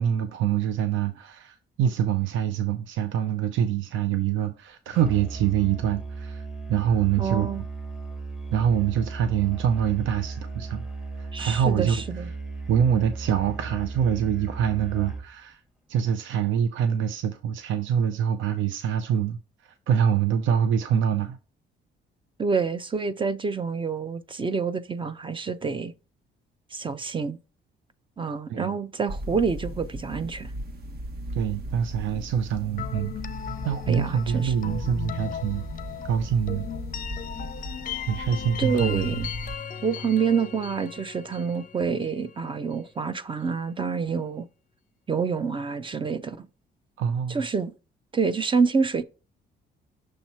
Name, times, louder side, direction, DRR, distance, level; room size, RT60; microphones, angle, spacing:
voice 1, 0.0-7.5 8.5-10.8 11.2-12.2 12.7-15.6 15.9-21.4 28.5-28.7 31.3-33.1 33.6-35.7 36.1-36.7 38.1-39.3 47.0-47.5, right 8 dB, 75° right, 0.6 m, -25 dB
Musical instrument, 4.9-15.3, right 4 dB, ahead, 1.1 m, -36 dB
voice 2, 7.2-7.6 11.3-12.3 22.4-25.9 26.7-27.4 28.2-30.5 33.9-34.5 38.6-39.3 39.8-44.5 45.1-46.5 47.3-47.7 48.1-49.0, right 5 dB, 25° right, 0.5 m, -27 dB
sound 1, 29.1-39.6, right 1 dB, 50° right, 1.1 m, -37 dB
sound 2, 32.8-42.5, left 8 dB, 45° left, 0.5 m, -37 dB
6.5 x 2.9 x 5.5 m
cardioid pair, 90°, 20 cm